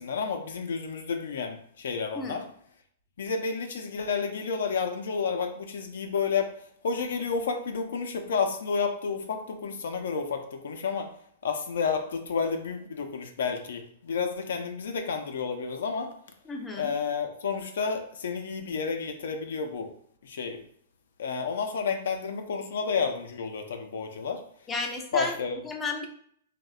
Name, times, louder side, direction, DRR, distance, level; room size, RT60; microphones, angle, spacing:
voice 1, 0.0-2.4 3.2-6.6 6.8-11.1 11.4-16.1 16.8-19.9 20.2-20.6 21.2-24.4 25.1-25.6, left 5 dB, 75° left, 5 dB, 0.4 m, -30 dB
voice 2, 2.1-2.5 16.5-16.9 24.7-25.4 25.6-26.1, left 3 dB, 15° left, 2 dB, 0.4 m, -33 dB
2.6 x 2.0 x 2.3 m, 0.64 s
hypercardioid pair, 125°, 0 cm